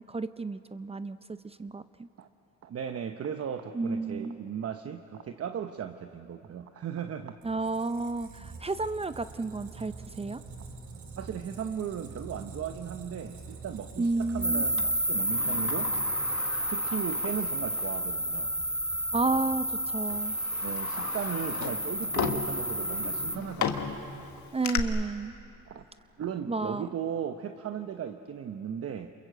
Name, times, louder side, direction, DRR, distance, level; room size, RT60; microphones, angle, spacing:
voice 1, 0.0-2.1 3.7-4.4 7.4-10.4 14.0-14.6 19.1-20.4 24.5-25.3 26.5-26.9, right 3 dB, 20° right, 12 dB, 0.6 m, -31 dB
voice 2, 2.6-7.4 11.2-15.9 16.7-18.5 20.6-24.0 25.7-25.8 26.2-29.1, right 8 dB, 50° right, 8 dB, 0.9 m, -37 dB
Squeak, 7.4-15.3, right 4 dB, 70° right, 3.0 m, -45 dB
sound 1, 14.4-23.4, right 1 dB, 5° right, 1.3 m, -31 dB
Sliding door, 14.8-18.0 18.4-18.5 19.4-19.6 20.1-24.8, left 7 dB, 70° left, 1.6 m, -36 dB
28.5 x 22.0 x 7.9 m, 2.9 s
cardioid pair, 90°, 30 cm